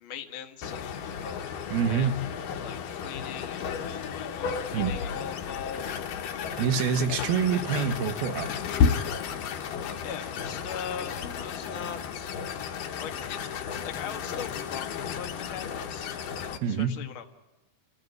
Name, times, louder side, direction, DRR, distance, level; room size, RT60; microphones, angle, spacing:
voice 1, 0.0-1.1 1.9-2.1 2.6-6.1 9.6-12.3 13.0-16.1 16.7-17.2, left 8 dB, 55° left, 1.5 m, -41 dB
sound 1, 0.6-16.6, left 6 dB, 70° left, 2.5 m, -33 dB
voice 2, 1.7-2.2 4.7-5.0 6.5-8.5 16.6-17.0, right 7 dB, 75° right, 3.1 m, -26 dB
29.5 x 15.0 x 9.5 m
omnidirectional pair, 4.4 m